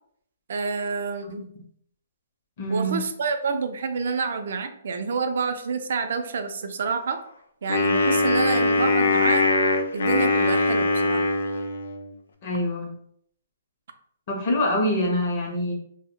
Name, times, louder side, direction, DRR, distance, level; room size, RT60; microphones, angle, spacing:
voice 1, 0.5-1.5 2.7-7.2 7.6-9.4 9.9-11.3, right 5 dB, 60° right, 7 dB, 0.4 m, -28 dB
voice 2, 2.6-3.0 12.4-12.9 14.3-15.7, left 1 dB, 40° left, 0 dB, 0.6 m, -25 dB
Wind instrument woodwind instrument, 7.7-12.1, left 2 dB, 85° left, 0.4 m, -22 dB
2.1 x 2.0 x 3.6 m, 0.66 s
hypercardioid pair, 165°, 0 cm